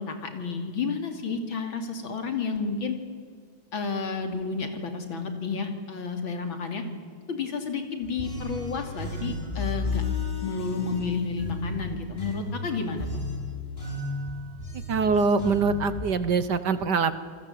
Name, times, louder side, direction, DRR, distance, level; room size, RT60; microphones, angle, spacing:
voice 1, 0.0-3.0 3.7-6.8 7.3-10.0 10.4-13.1, left 5 dB, 65° left, 6 dB, 3.5 m, -31 dB
sound 1, 8.0-16.1, left 2 dB, 25° left, 3.9 m, -33 dB
voice 2, 14.9-17.1, right 4 dB, 60° right, 13 dB, 1.5 m, -23 dB
28.5 x 21.0 x 8.5 m, 2.1 s
omnidirectional pair, 2.4 m